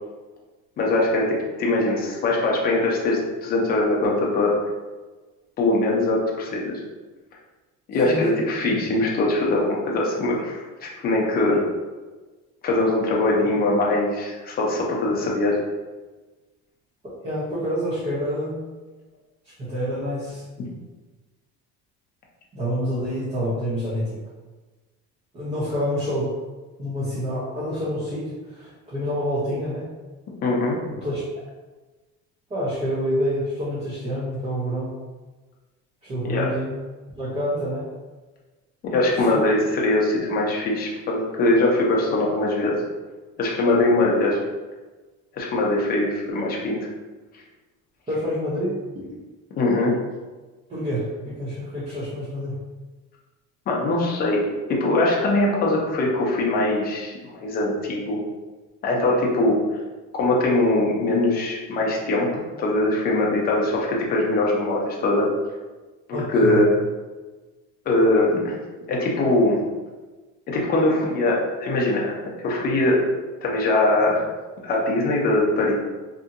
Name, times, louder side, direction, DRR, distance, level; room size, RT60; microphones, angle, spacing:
voice 1, 0.8-4.6 5.6-6.8 7.9-11.6 12.6-15.6 30.4-30.8 36.3-36.5 38.8-42.7 43.4-44.4 45.3-46.8 49.6-50.0 53.7-54.4 54.8-58.2 58.8-59.8 60.1-65.3 66.1-66.7 67.9-68.6 68.9-69.6 70.5-73.0 73.4-74.3 74.6-75.7, left 2 dB, 30° left, -2 dB, 0.5 m, -22 dB
voice 2, 8.0-8.4 11.4-11.6 17.0-18.6 19.4-20.4 22.5-24.2 25.3-26.3 26.8-29.9 30.8-31.2 32.5-35.0 36.0-36.8 37.1-37.9 39.3-39.4 48.1-48.8 50.7-52.6 66.1-66.6, equal, 20° right, -9 dB, 0.5 m, -27 dB
2.8 x 2.6 x 2.5 m, 1.2 s
cardioid pair, 155°, 30 cm